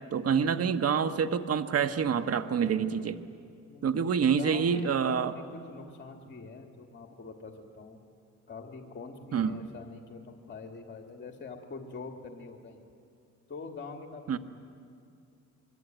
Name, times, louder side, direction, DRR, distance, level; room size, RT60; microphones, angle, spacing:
voice 1, 0.1-3.2 3.8-5.3 9.3-9.6 14.3-14.4, right 7 dB, 55° right, 10 dB, 1.3 m, -27 dB
voice 2, 3.7-8.0 8.5-12.8 13.5-14.4, left 4 dB, 35° left, 3 dB, 2.5 m, -44 dB
26.5 x 23.0 x 9.3 m, 2.4 s
cardioid pair, 90°, 30 cm